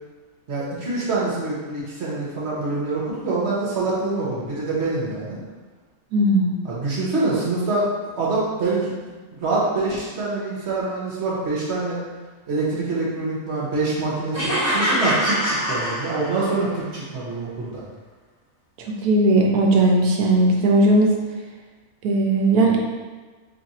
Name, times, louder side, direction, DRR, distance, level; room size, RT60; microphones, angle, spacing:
voice 1, 0.5-5.4 6.6-7.9 8.2-8.9 9.3-12.0 12.5-17.8, right 3 dB, 50° right, -6 dB, 1.1 m, -25 dB
voice 2, 6.1-6.7 18.9-21.1 22.0-22.8, right 1 dB, 85° right, 0 dB, 1.1 m, -18 dB
sound 1, 14.3-16.7, equal, 10° left, 0.9 m, -24 dB
3.1 x 2.4 x 4.1 m, 1.3 s
omnidirectional pair, 1.5 m